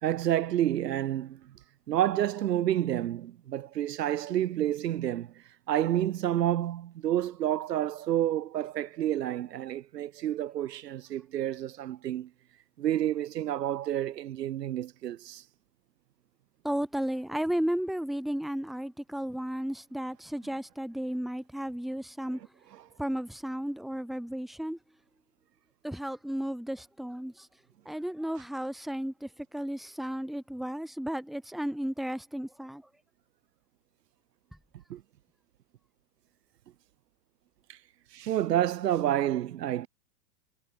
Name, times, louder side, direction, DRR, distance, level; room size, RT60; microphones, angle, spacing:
voice 1, 0.0-1.4 1.9-5.3 5.7-12.3 12.8-15.4 34.9-35.0 37.7-37.8 38.1-39.9, right 12 dB, 75° right, 1.5 m, -29 dB
voice 2, 16.6-22.4 23.0-24.8 25.8-27.5 27.9-32.8, equal, ahead, 1.9 m, -34 dB
hypercardioid pair, 135°, 49 cm